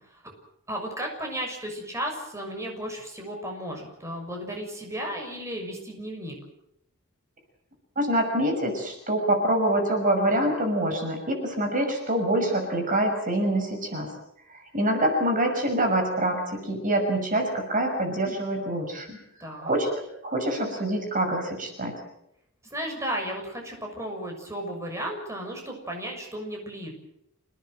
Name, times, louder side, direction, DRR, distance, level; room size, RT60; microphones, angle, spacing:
voice 1, 0.7-6.3 19.4-19.7 22.7-26.9, equal, 15° right, 1 dB, 6.6 m, -34 dB
voice 2, 8.0-14.1 14.5-19.2 19.6-19.9 20.2-21.9, right 1 dB, 40° right, 4 dB, 6.1 m, -25 dB
28.5 x 18.5 x 7.9 m, 0.79 s
head